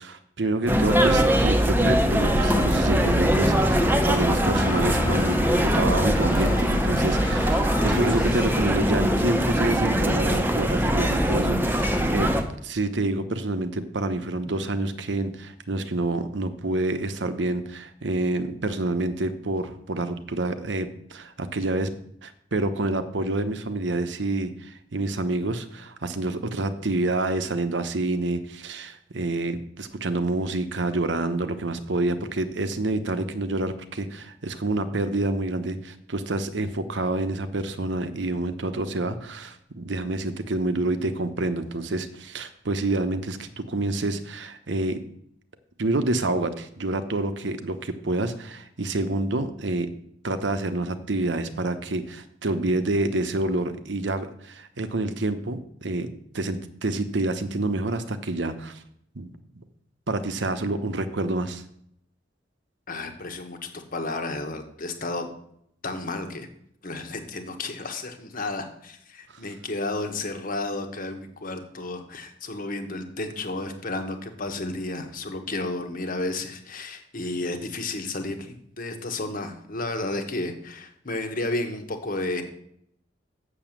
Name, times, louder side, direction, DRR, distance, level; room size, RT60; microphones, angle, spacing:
voice 1, 0.0-21.9 22.2-45.0 45.8-49.9 50.2-58.8 59.1-59.6 60.1-61.6, right 2 dB, 75° right, 10 dB, 0.9 m, -28 dB
sound 1, 0.7-12.4, equal, 10° right, 0.9 m, -22 dB
sound 2, 2.4-9.0, left 2 dB, 20° left, 1.1 m, -37 dB
voice 2, 62.9-65.3 65.8-66.5 66.8-82.4, left 2 dB, 50° left, 6 dB, 1.4 m, -32 dB
7.1 x 6.9 x 7.4 m, 0.70 s
head